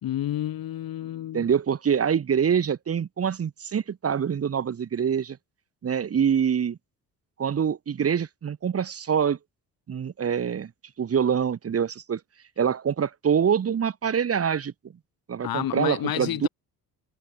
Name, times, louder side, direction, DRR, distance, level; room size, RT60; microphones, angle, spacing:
voice 1, 0.0-1.5 15.4-16.5, left 12 dB, 70° left, 4.4 m, -30 dB
voice 2, 1.3-5.4 5.8-6.8 7.4-9.4 9.9-10.7 11.0-12.2 12.6-14.7 15.3-16.5, right 7 dB, 40° right, 1.4 m, -25 dB
cardioid pair, 95°, 36 cm